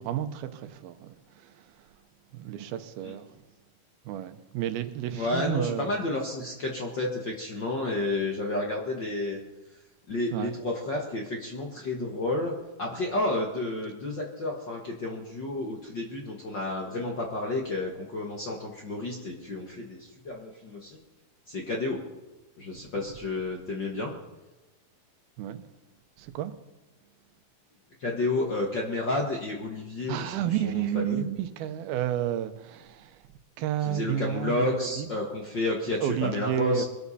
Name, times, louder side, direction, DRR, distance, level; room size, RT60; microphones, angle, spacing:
voice 1, 0.0-1.6 2.3-3.3 4.1-5.9 10.3-10.5 25.4-25.7 26.2-26.5 30.1-33.2 33.6-35.1 36.0-36.8, right 11 dB, 90° right, 2.8 m, -31 dB
voice 2, 5.1-9.4 10.1-21.0 21.5-22.0 22.6-24.1 28.0-31.3 33.8-36.8, left 2 dB, 50° left, 1.4 m, -31 dB
23.0 x 13.0 x 4.2 m
omnidirectional pair, 4.2 m